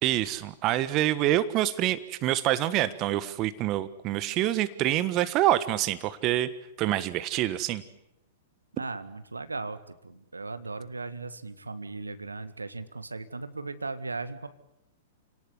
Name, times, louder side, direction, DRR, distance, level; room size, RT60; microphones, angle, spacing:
voice 1, 0.0-6.5 6.8-7.8, right 14 dB, 35° right, 14 dB, 1.4 m, -26 dB
voice 2, 8.7-14.5, right 3 dB, 85° right, 12 dB, 1.7 m, -37 dB
30.0 x 18.5 x 9.7 m, 0.87 s
figure-of-eight pair, 105°, 0 cm